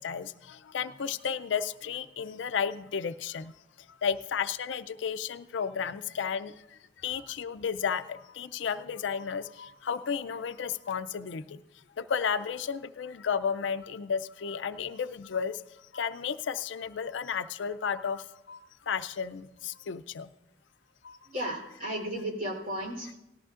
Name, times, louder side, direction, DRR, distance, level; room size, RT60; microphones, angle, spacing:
voice 1, 0.7-3.5 4.0-6.5 7.0-11.4 12.0-15.5 15.9-18.2 18.5-18.6 18.9-19.4 19.9-20.3, left 7 dB, 80° left, 12 dB, 0.4 m, -32 dB
voice 2, 21.3-23.2, right 1 dB, 50° right, 0 dB, 3.6 m, -34 dB
18.5 x 13.5 x 2.5 m, 0.93 s
head